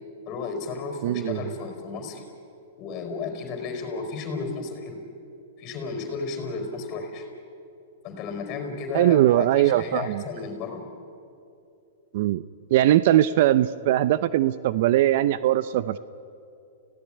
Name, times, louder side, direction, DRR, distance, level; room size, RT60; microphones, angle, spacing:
voice 1, 0.3-2.2 2.8-5.1 5.6-7.3 8.0-10.8, left 4 dB, 35° left, 4 dB, 4.4 m, -33 dB
voice 2, 1.0-1.4 8.9-10.2 12.1-12.4 12.7-16.0, right 13 dB, 60° right, 15 dB, 0.7 m, -20 dB
29.5 x 17.0 x 9.9 m, 2.6 s
hypercardioid pair, 130°, 0 cm